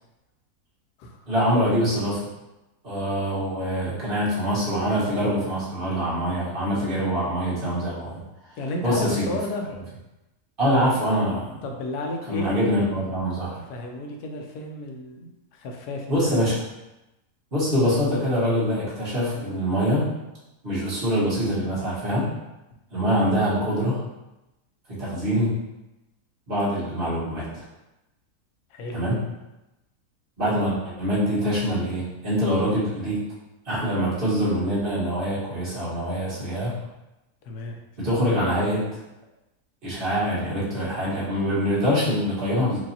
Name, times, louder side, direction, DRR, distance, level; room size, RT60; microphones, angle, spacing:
voice 1, 1.3-2.2 2.8-8.2 8.8-9.4 10.6-11.6 12.3-13.6 16.1-16.6 17.5-20.1 20.6-22.3 22.9-24.0 25.0-25.6 26.5-27.6 28.9-29.2 30.4-33.2 33.6-36.8 38.0-38.8 39.8-42.8, equal, 35° right, -9 dB, 1.5 m, -24 dB
voice 2, 8.6-9.7 11.6-12.5 13.7-16.4 28.7-29.0 37.4-37.8, left 2 dB, 80° left, 2 dB, 1.2 m, -32 dB
4.6 x 2.7 x 2.8 m, 0.98 s
omnidirectional pair, 1.7 m